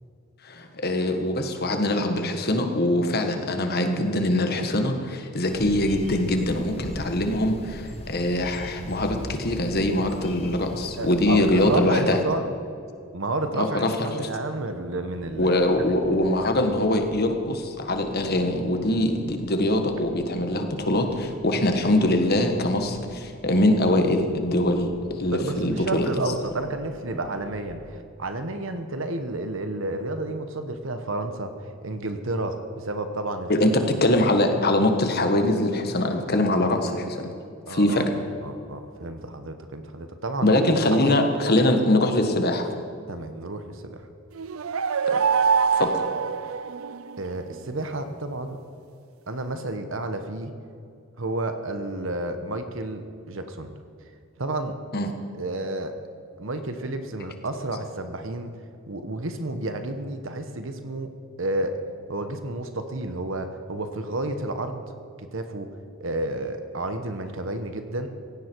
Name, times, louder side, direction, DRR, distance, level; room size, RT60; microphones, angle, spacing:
voice 1, 0.4-12.2 13.6-14.3 15.4-24.9 25.2-26.1 33.5-33.7 34.0-37.3 37.7-38.0 40.4-42.7 45.1-45.2 45.7-45.9 54.9-55.1, left 1 dB, 50° left, 5 dB, 1.5 m, -23 dB
sound 1, 5.5-11.8, left 1 dB, 30° left, 1.0 m, -38 dB
voice 2, 11.0-12.4 13.1-15.6 16.4-16.5 21.1-21.2 25.3-31.5 31.8-33.5 37.7-40.5 40.9-41.2 43.1-44.1 47.2-48.6 49.3-50.5 51.2-53.7 54.4-54.8 55.3-56.0 56.4-58.5 58.9-61.1 61.4-61.8 62.1-64.8 65.3-65.7 66.0-68.1, right 2 dB, 65° right, 8 dB, 1.1 m, -31 dB
sound 2, 15.2-27.7, equal, 70° left, 3.6 m, -45 dB
sound 3, 44.4-47.3, right 6 dB, 80° right, 0.5 m, -24 dB
16.5 x 16.5 x 4.6 m, 2.4 s
head